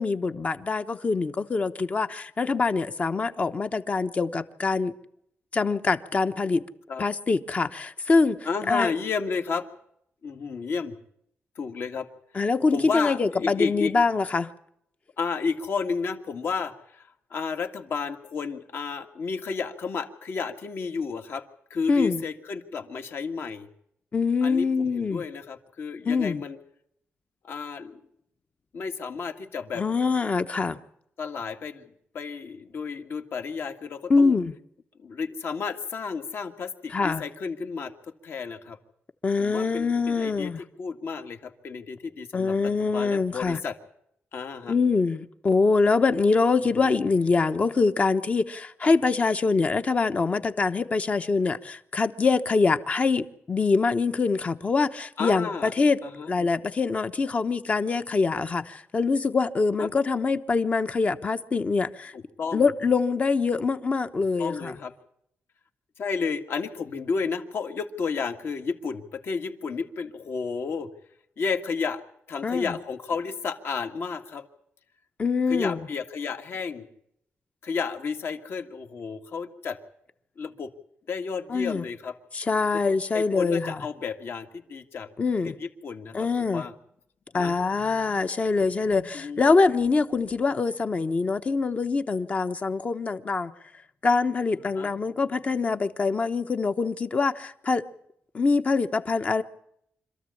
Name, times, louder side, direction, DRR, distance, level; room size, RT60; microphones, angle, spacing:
voice 1, 0.0-4.9 5.5-6.6 7.0-8.4 8.7-8.9 12.3-14.5 21.9-22.2 24.1-25.2 26.0-26.4 29.8-30.8 34.1-34.5 36.9-37.2 39.2-40.6 42.3-43.6 44.7-56.0 56.3-62.1 62.5-64.7 72.4-72.8 75.2-75.9 81.5-81.8 82.3-83.9 85.2-85.6 86.1-86.6 87.3-93.5 94.0-97.8 98.3-99.4, left 4 dB, 30° left, 1.0 m, -24 dB
voice 2, 8.5-9.7 10.2-10.9 11.6-12.1 12.7-13.9 15.2-21.4 21.7-23.7 24.4-26.6 27.4-28.0 28.7-29.8 31.2-31.9 32.1-34.4 35.0-37.9 38.2-38.8 39.4-40.5 40.8-43.8 44.3-44.7 46.7-47.1 48.8-48.9 55.2-55.7 56.0-56.3 59.8-59.9 62.1-62.7 64.4-64.9 66.0-70.9 71.4-74.4 75.5-76.9 77.6-79.8 80.4-80.7 81.1-82.1 83.1-85.1 85.4-86.7 87.3-87.5 89.1-89.5 94.7-94.9, left 5 dB, 60° left, 2.0 m, -32 dB
26.0 x 14.0 x 8.5 m
wide cardioid pair, 170°, 5 cm